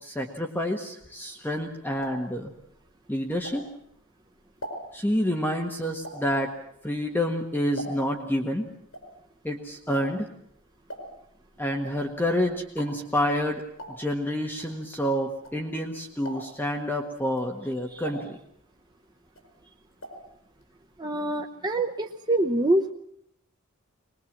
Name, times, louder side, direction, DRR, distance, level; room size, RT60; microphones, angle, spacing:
voice 1, 0.0-2.5 3.1-3.6 4.9-6.5 6.8-8.7 9.4-10.3 11.6-13.6 14.0-18.4, equal, 10° left, 2 dB, 1.5 m, -28 dB
sound 1, 1.7-4.0 4.4-8.3 8.6-15.9 16.2-16.7 17.2-18.9 19.2-20.3 20.6-20.7 20.9-21.0, right 1 dB, 70° left, 5.3 m, -43 dB
voice 2, 21.0-22.9, right 1 dB, 20° right, 2 dB, 0.9 m, -25 dB
22.5 x 21.0 x 7.4 m, 0.73 s
head